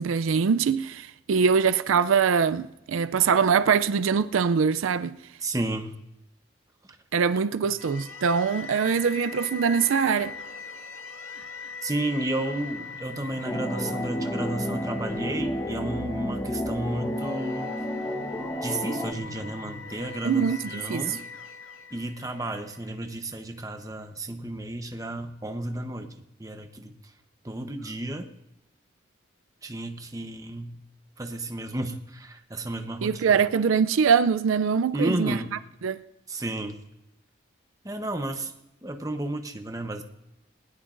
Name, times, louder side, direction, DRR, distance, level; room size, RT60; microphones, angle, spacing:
voice 1, 0.0-5.2 7.1-10.3 20.2-21.1 33.0-35.4 35.8-36.0, right 6 dB, 85° right, 0.4 m, -23 dB
voice 2, 5.4-5.9 11.8-17.7 18.6-21.2 21.9-26.9 27.4-28.3 29.6-30.8 31.2-33.2 34.9-35.6 36.3-36.8 37.8-38.5 38.8-40.0, right 1 dB, 15° right, 0.9 m, -32 dB
sound 1, 7.8-22.9, left 4 dB, 90° left, 1.8 m, -41 dB
sound 2, 13.4-19.1, equal, 10° left, 0.9 m, -31 dB
20.0 x 19.0 x 2.6 m
head